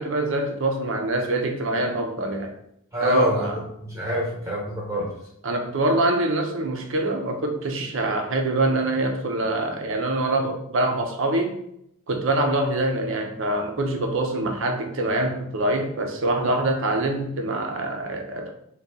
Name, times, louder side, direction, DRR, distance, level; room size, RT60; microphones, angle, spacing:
voice 1, 0.0-2.5 3.0-3.6 5.4-11.6 12.1-18.5, right 2 dB, 60° right, 4 dB, 0.6 m, -24 dB
voice 2, 2.9-5.1, equal, 15° right, -5 dB, 1.0 m, -26 dB
4.0 x 2.3 x 3.4 m, 0.75 s
head